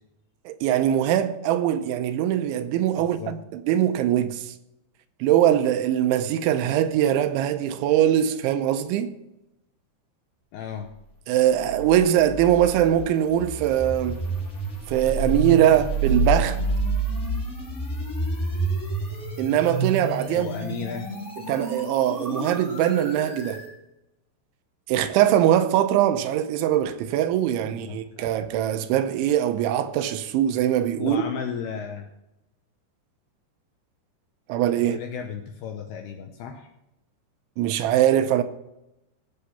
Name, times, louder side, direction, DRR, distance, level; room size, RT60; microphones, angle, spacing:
voice 1, 0.5-4.5 5.2-9.1 11.3-14.2 14.9-16.6 19.4-20.5 21.5-23.6 24.9-31.2 34.5-35.0 37.6-38.4, right 11 dB, 85° right, 3.0 m, -22 dB
voice 2, 3.0-3.4 10.5-10.9 15.5-15.9 20.2-21.1 27.6-28.3 31.0-32.1 34.8-36.7, left 7 dB, 80° left, 2.3 m, -35 dB
sound 1, 11.6-23.7, right 2 dB, 20° left, 2.3 m, -29 dB
16.5 x 6.8 x 5.7 m
omnidirectional pair, 5.5 m